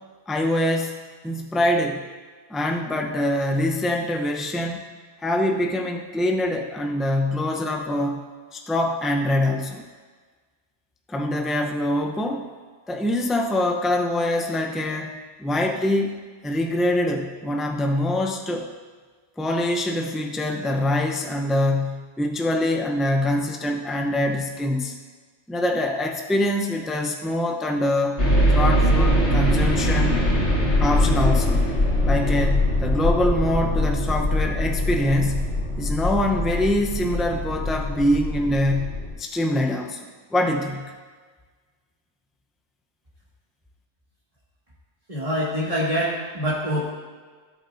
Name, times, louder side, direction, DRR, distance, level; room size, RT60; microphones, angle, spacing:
voice 1, 0.3-2.0 2.5-4.8 5.2-8.2 8.5-9.9 11.1-12.5 12.9-16.2 16.4-18.7 19.4-24.9 25.5-28.2 28.5-30.2 30.8-31.6 32.0-35.4 35.8-40.0 40.3-40.8, left 1 dB, ahead, 2 dB, 0.6 m, -24 dB
sound 1, 28.2-39.1, left 1 dB, 80° left, 2.5 m, -22 dB
voice 2, 45.1-46.9, equal, 30° right, -8 dB, 2.1 m, -25 dB
17.5 x 8.1 x 2.6 m, 1.5 s
omnidirectional pair, 1.2 m